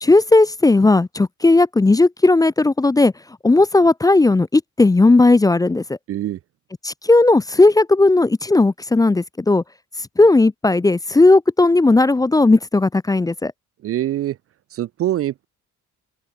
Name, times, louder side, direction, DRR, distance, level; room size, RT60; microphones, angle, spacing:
voice 1, 0.0-3.1 3.4-5.8 6.8-9.6 10.2-13.5, left 2 dB, 10° left, 0.5 m, -15 dB
voice 2, 6.1-6.4 13.8-14.4 14.7-15.4, right 13 dB, 50° right, 0.4 m, -24 dB
cardioid pair, 155°, 31 cm